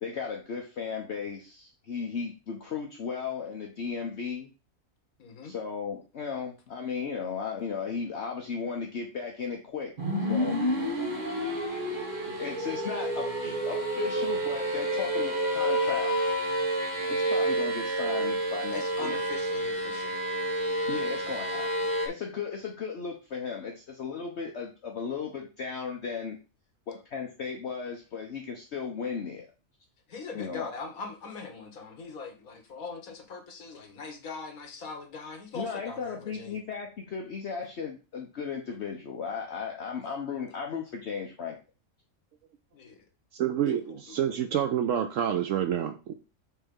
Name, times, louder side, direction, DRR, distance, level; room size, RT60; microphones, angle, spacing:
voice 1, 0.0-4.5 5.4-9.9 10.3-10.6 12.3-16.1 17.1-19.1 20.9-21.7 22.0-26.4 26.9-29.5 30.3-30.7 35.5-41.6, left 6 dB, 55° left, 1 dB, 1.1 m, -35 dB
voice 2, 5.2-5.5 16.9-17.3 18.7-20.1 30.1-36.6 42.7-43.0 43.7-44.1, left 4 dB, 80° left, 5 dB, 1.7 m, -41 dB
sound 1, 10.0-22.1, right 1 dB, 35° right, 1.8 m, -29 dB
voice 3, 43.3-46.1, right 9 dB, 70° right, 8 dB, 0.9 m, -28 dB
6.4 x 3.4 x 5.3 m, 0.33 s
omnidirectional pair, 1.5 m